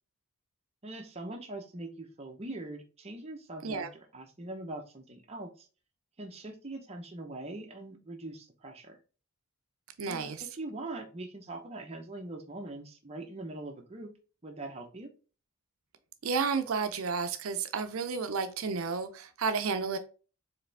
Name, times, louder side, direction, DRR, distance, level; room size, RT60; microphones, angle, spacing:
voice 1, 0.8-5.7 6.2-9.0 10.1-14.1 14.4-15.1, right 2 dB, 30° right, 0.7 m, -42 dB
voice 2, 10.0-10.4 16.2-20.0, right 5 dB, 75° right, 0.5 m, -31 dB
4.8 x 3.3 x 3.3 m
head